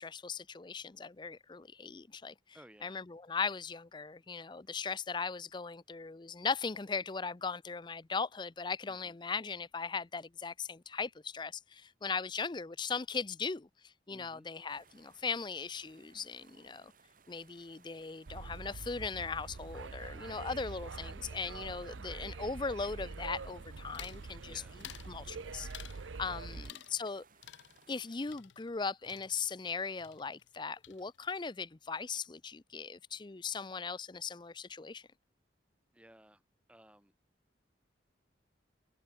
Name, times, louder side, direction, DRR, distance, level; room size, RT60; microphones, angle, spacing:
voice 1, 0.0-2.3 2.8-16.9 17.3-24.5 25.1-25.9 26.2-27.2 27.9-35.1, left 5 dB, 25° left, 0.5 m, -38 dB
voice 2, 2.5-3.0 8.8-9.2 14.1-14.5 20.1-20.6 24.4-24.8 26.4-26.7 35.9-36.4 36.7-37.1, equal, 5° right, 3.3 m, -59 dB
sound 1, 14.7-28.3, right 5 dB, 45° right, 3.7 m, -64 dB
sound 2, 18.3-26.7, right 4 dB, 80° right, 0.7 m, -45 dB
sound 3, 23.9-24.3 24.8-25.1 25.7-26.1 26.6-27.2 27.4-29.7 30.0-30.6 30.8-31.4, left 12 dB, 70° left, 0.5 m, -52 dB
head